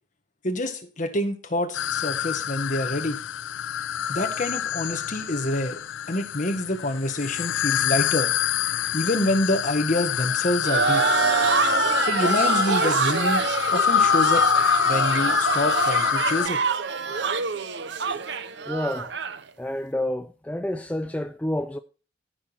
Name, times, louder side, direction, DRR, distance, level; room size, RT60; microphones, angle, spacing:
voice 1, 0.4-3.2 4.1-5.8 6.1-8.3 8.9-11.1 12.1-13.4 13.7-14.5 14.8-16.6, left 1 dB, 45° left, 1.6 m, -26 dB
sound 1, 1.7-16.5, left 9 dB, 90° left, 0.4 m, -25 dB
sound 2, 10.6-19.4, right 5 dB, 65° right, 0.7 m, -25 dB
voice 2, 18.7-19.1 19.6-21.8, left 1 dB, 5° left, 0.4 m, -29 dB
13.5 x 6.2 x 4.4 m
head